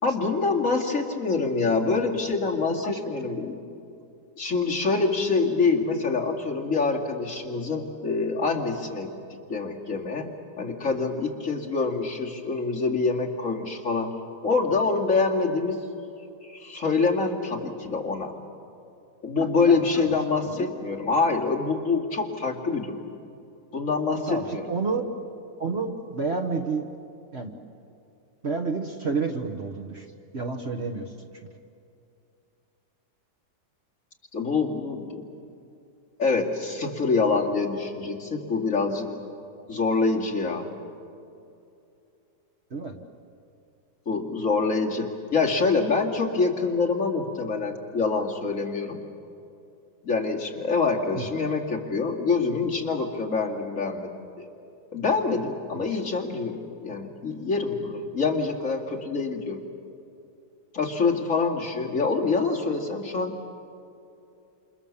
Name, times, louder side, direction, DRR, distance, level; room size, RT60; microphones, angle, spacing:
voice 1, 0.0-3.6 4.4-9.1 9.5-10.3 10.6-14.1 14.4-15.8 16.4-18.3 19.2-23.0 23.7-24.6 34.3-35.2 36.2-39.1 39.7-40.7 44.1-49.0 50.0-54.1 54.4-54.5 54.9-59.6 60.7-63.3, left 4 dB, 50° left, -1 dB, 2.6 m, -25 dB
voice 2, 19.4-20.7 24.3-25.1 25.6-26.9 27.3-27.5 28.4-30.1 30.3-31.1 42.7-42.9 51.2-51.3 55.7-56.0, right 4 dB, 40° right, 4 dB, 1.5 m, -30 dB
28.5 x 28.0 x 7.2 m, 2.7 s
omnidirectional pair, 1.8 m